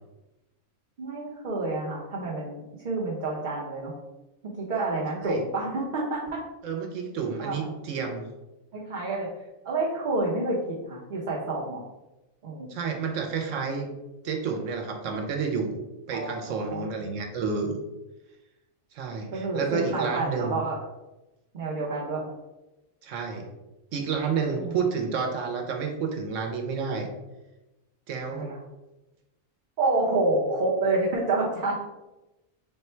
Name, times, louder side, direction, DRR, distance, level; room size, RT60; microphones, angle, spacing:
voice 1, 1.0-3.9 4.4-6.4 7.4-7.7 8.7-9.3 9.6-11.8 12.4-12.9 16.1-16.9 19.3-20.8 21.5-22.2 24.6-24.8 28.3-28.6 29.8-31.8, right 2 dB, 45° right, -6 dB, 0.7 m, -28 dB
voice 2, 6.6-8.2 12.7-13.9 14.2-15.8 16.1-17.8 18.9-20.6 23.0-23.5 23.9-27.1 28.1-28.5, right 5 dB, 70° right, 3 dB, 1.0 m, -30 dB
3.7 x 2.2 x 4.2 m, 1.0 s
omnidirectional pair, 1.4 m